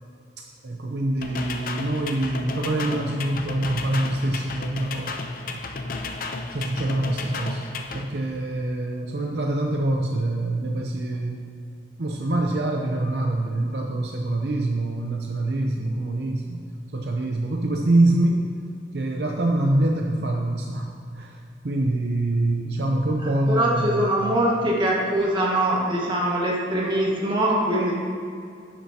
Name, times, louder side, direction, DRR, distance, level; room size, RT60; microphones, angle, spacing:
voice 1, 0.6-5.2 5.5-5.6 6.5-7.6 7.9-11.4 12.0-16.6 16.9-18.4 18.9-21.4 21.6-24.1, right 1 dB, 65° right, 1 dB, 0.6 m, -25 dB
sound 1, 1.2-8.0, left 3 dB, 50° left, 0.6 m, -33 dB
voice 2, 23.2-27.9, right 1 dB, 25° right, -4 dB, 1.6 m, -23 dB
10.5 x 7.3 x 2.8 m, 2.4 s
head